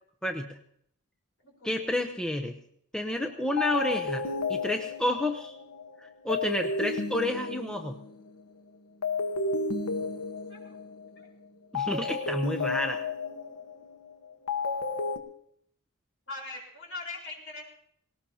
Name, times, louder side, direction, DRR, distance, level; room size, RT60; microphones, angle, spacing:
voice 1, 0.2-0.6 1.6-2.5 2.9-5.5 6.0-8.0 11.7-13.1, left 1 dB, 5° left, 3 dB, 0.7 m, -30 dB
voice 2, 1.4-1.9 10.5-10.8 11.2-11.3 16.3-17.6, left 3 dB, 60° left, -2 dB, 4.4 m, -41 dB
sound 1, 3.1-3.3 3.6-8.5 9.0-11.2 11.7-15.2, left 3 dB, 80° left, 1.2 m, -32 dB
19.0 x 18.0 x 2.8 m, 0.68 s
head